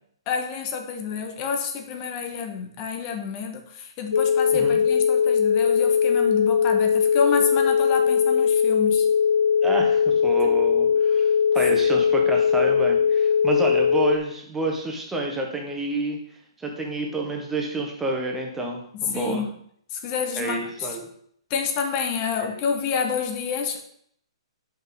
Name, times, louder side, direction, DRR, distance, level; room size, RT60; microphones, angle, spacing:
voice 1, 0.3-9.1 10.4-10.5 11.5-11.7 18.9-19.5 19.9-20.6 21.5-23.8, left 6 dB, 30° left, 5 dB, 0.9 m, -28 dB
sound 1, 4.1-14.2, left 7 dB, 90° left, 0.4 m, -20 dB
voice 2, 9.6-16.2 16.6-19.5 20.4-21.1 22.4-22.6, right 2 dB, 10° right, 0 dB, 1.2 m, -29 dB
5.5 x 5.4 x 3.9 m, 0.65 s
hypercardioid pair, 140°, 3 cm